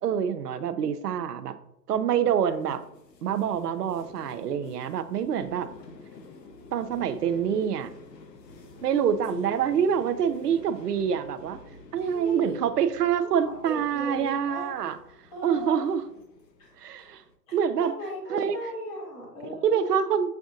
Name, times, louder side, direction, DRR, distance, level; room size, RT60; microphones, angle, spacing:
voice 1, 0.0-1.5 1.9-2.8 3.2-5.7 6.7-7.9 8.8-11.6 11.9-15.0 15.4-16.0 16.8-17.2 17.5-17.9 18.3-18.6 19.6-20.3, right 8 dB, 70° right, 11 dB, 0.6 m, -26 dB
sound 1, 2.4-17.3, left 3 dB, 80° left, 0.9 m, -49 dB
voice 2, 8.9-9.5 9.9-10.1 12.0-12.5 13.4-14.7 15.3-15.9 16.6-17.1 17.5-19.9, equal, 15° left, -3 dB, 0.7 m, -38 dB
7.1 x 2.6 x 2.5 m, 0.83 s
hypercardioid pair, 140°, 49 cm